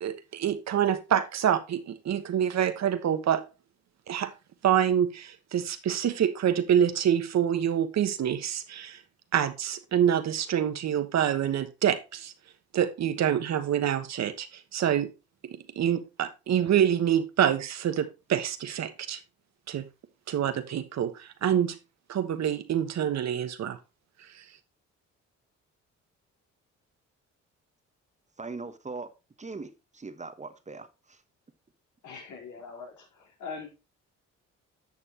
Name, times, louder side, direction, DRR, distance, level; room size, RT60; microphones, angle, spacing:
voice 1, 0.0-3.4 4.1-4.3 4.6-9.0 9.3-12.3 12.7-15.1 15.7-19.2 19.7-19.9 20.3-21.8 22.1-23.8, right 9 dB, 60° right, 1.2 m, -26 dB
voice 2, 28.4-29.1 29.4-31.2, right 3 dB, 25° right, 1.1 m, -40 dB
voice 3, 32.0-33.7, left 5 dB, 80° left, 4.0 m, -42 dB
11.0 x 6.8 x 2.9 m
cardioid pair, 90°, 30 cm